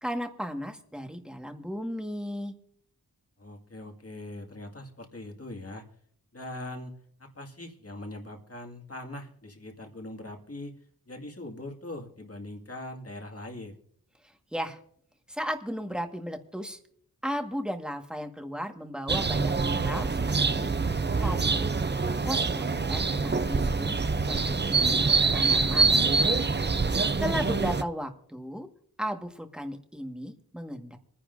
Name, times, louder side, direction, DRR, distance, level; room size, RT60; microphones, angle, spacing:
voice 1, 0.0-2.5 14.2-14.8 15.3-16.8 17.2-20.7 21.2-21.7 22.1-24.0 24.3-25.0 25.3-26.0 27.2-28.7 29.0-31.0, equal, ahead, 4 dB, 1.7 m, -35 dB
voice 2, 3.4-5.9 6.3-10.8 11.1-13.8 27.3-27.7, left 1 dB, 40° left, 3 dB, 2.1 m, -41 dB
sound 1, 19.1-27.8, right 4 dB, 30° right, 0.6 m, -25 dB
26.5 x 10.0 x 2.7 m, 0.63 s
wide cardioid pair, 50°, 37 cm